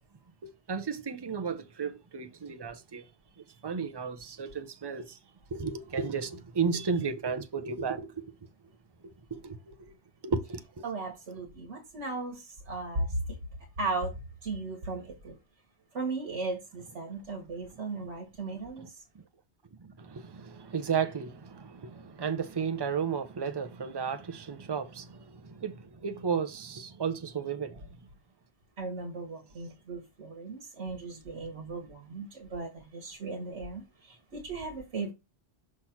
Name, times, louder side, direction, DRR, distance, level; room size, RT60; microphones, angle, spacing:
voice 1, 0.4-3.0 3.6-5.2 5.5-8.3 9.0-9.9 10.2-10.8 19.8-27.9, right 6 dB, 30° right, 0.6 m, -34 dB
voice 2, 10.8-13.4 13.8-15.4 15.9-19.0 28.8-35.1, right 3 dB, 85° right, 1.5 m, -36 dB
6.0 x 3.1 x 5.7 m
omnidirectional pair, 1.2 m